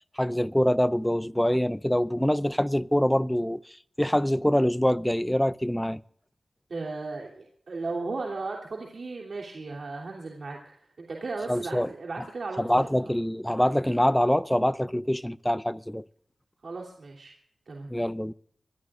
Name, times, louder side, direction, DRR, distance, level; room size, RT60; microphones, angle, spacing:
voice 1, 0.2-3.6 4.0-6.0 11.5-11.9 12.6-16.0 17.9-18.3, equal, 5° left, 0.5 m, -25 dB
voice 2, 6.7-12.9 16.6-17.3 17.7-17.9, right 3 dB, 70° right, 3.1 m, -36 dB
25.5 x 17.0 x 2.5 m
wide cardioid pair, 75°, 0 cm